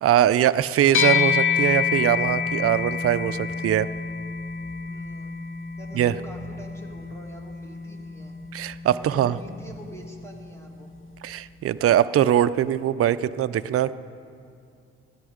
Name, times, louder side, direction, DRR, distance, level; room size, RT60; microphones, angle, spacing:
voice 1, 0.0-3.9 5.9-6.1 8.5-9.4 11.2-13.9, right 11 dB, 50° right, 14 dB, 0.5 m, -22 dB
sound 1, 0.9-10.6, left 7 dB, 40° left, 0.9 m, -28 dB
voice 2, 4.8-5.4 5.8-8.3 9.0-10.9, equal, 10° left, 1 dB, 2.1 m, -45 dB
15.5 x 12.0 x 5.0 m, 2.4 s
cardioid pair, 90°, 30 cm